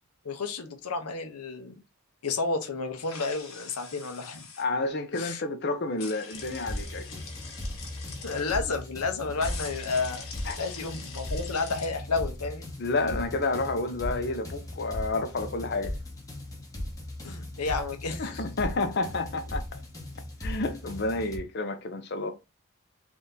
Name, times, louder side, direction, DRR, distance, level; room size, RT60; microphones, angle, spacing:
voice 1, 0.2-1.7 2.2-4.5 5.1-5.4 8.2-10.3 10.6-12.7 17.2-18.4, left 4 dB, 90° left, 0.8 m, -31 dB
sound 1, 3.0-4.6 6.0-8.4 9.4-11.9, left 5 dB, 70° left, 1.1 m, -44 dB
voice 2, 4.6-7.2 10.5-10.6 12.8-15.9 18.2-19.6 20.4-22.3, left 3 dB, 50° left, 0.6 m, -30 dB
sound 2, 6.3-21.4, left 1 dB, 15° left, 0.9 m, -38 dB
3.5 x 2.7 x 3.6 m
head